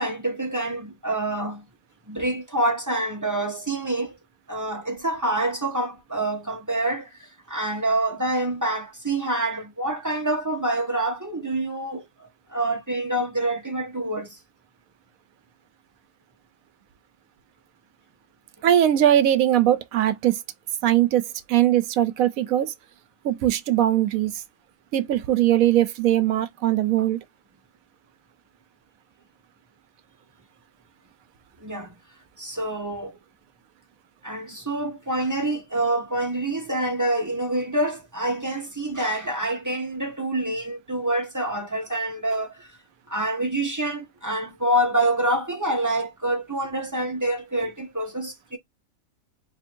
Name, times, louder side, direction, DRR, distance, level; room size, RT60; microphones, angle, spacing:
voice 1, 0.0-1.7 2.1-4.2 4.5-14.4 31.6-31.9 32.4-33.2 34.2-42.8 43.1-48.6, right 1 dB, 15° right, 0.7 m, -27 dB
voice 2, 18.6-20.4 20.8-21.2 21.5-22.7 23.2-24.4 24.9-27.2, right 12 dB, 75° right, 1.0 m, -20 dB
3.1 x 2.6 x 4.4 m
omnidirectional pair, 1.5 m